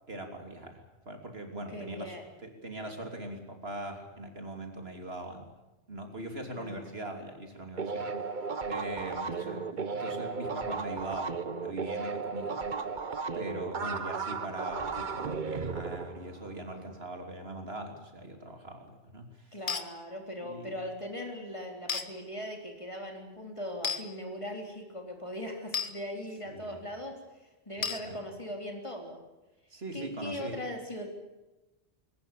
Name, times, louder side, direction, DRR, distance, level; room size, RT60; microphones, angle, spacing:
voice 1, 0.1-2.2 2.4-5.5 5.9-8.4 8.6-12.6 13.3-19.6 20.4-20.8 26.5-26.8 27.7-28.2 29.7-30.6, right 1 dB, 60° right, 4 dB, 3.5 m, -41 dB
voice 2, 1.7-2.2 6.6-6.8 9.1-10.0 14.0-14.2 19.5-27.2 27.7-29.2 29.9-31.1, equal, 25° left, 3 dB, 3.9 m, -40 dB
sound 1, 7.8-16.9, right 5 dB, 45° right, 1.2 m, -35 dB
sound 2, 19.7-19.9 21.9-22.1 23.8-24.0 25.7-25.9 27.8-28.0, left 5 dB, 50° left, 1.5 m, -31 dB
22.0 x 19.0 x 8.5 m, 1.0 s
omnidirectional pair, 1.1 m